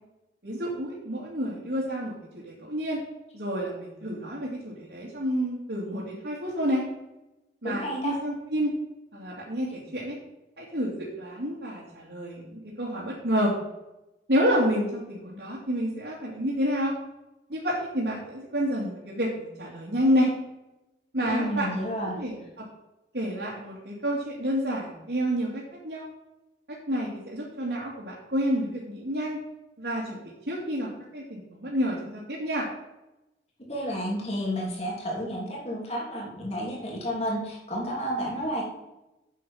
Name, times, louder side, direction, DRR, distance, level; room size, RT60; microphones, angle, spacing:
voice 1, 0.4-2.1 2.4-3.0 3.3-6.8 7.6-8.7 9.1-10.2 10.6-13.5 14.3-16.9 17.5-20.3 21.1-21.7 22.2-22.7 23.1-26.1 26.9-29.4 29.8-32.7, equal, 70° right, -7 dB, 2.5 m, -29 dB
voice 2, 7.6-8.1 21.2-22.2 33.7-38.6, equal, 35° left, -3 dB, 2.9 m, -31 dB
8.1 x 7.6 x 5.6 m, 0.97 s
head